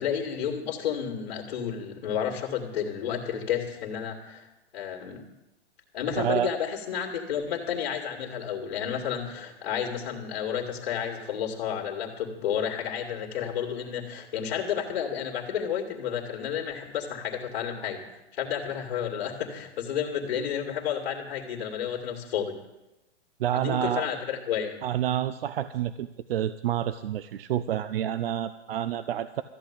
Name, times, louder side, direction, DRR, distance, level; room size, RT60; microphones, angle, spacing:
voice 1, 0.0-4.5 4.7-5.2 5.9-22.6 23.5-24.7, left 8 dB, 55° left, -1 dB, 2.4 m, -31 dB
voice 2, 6.2-6.5 23.4-24.1 24.8-29.4, right 11 dB, 55° right, 13 dB, 0.6 m, -28 dB
14.0 x 8.2 x 8.8 m, 0.96 s
hypercardioid pair, 160°, 34 cm